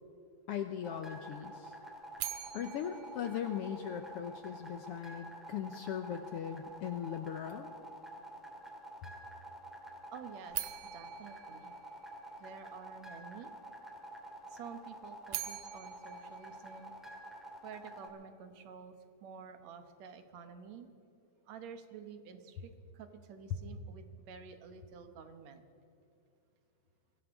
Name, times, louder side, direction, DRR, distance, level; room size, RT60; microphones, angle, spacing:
voice 1, 0.5-1.7 2.5-7.7, left 9 dB, 80° left, 6 dB, 1.3 m, -39 dB
sound 1, 0.8-18.1, right 1 dB, ahead, 1.9 m, -48 dB
sound 2, 2.2-4.3 10.5-12.7 15.0-17.4, right 13 dB, 90° right, 2.3 m, -44 dB
voice 2, 10.1-11.7 12.4-13.5 14.5-16.9 17.6-20.9 21.5-25.6, right 6 dB, 65° right, 8 dB, 2.2 m, -50 dB
23.5 x 16.5 x 3.6 m, 2.7 s
omnidirectional pair, 3.5 m